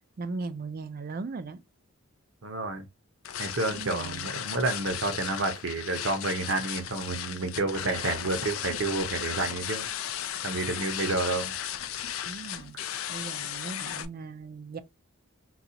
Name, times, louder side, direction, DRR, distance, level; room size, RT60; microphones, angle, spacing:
voice 1, 0.2-1.6 3.7-4.3 12.3-12.8 13.1-14.8, right 3 dB, 40° right, 0.4 m, -38 dB
voice 2, 2.4-2.9 3.4-9.9 10.4-11.5, right 3 dB, 60° right, 0.7 m, -30 dB
sound 1, 3.2-14.0, left 10 dB, 70° left, 0.4 m, -35 dB
3.9 x 2.3 x 2.8 m
head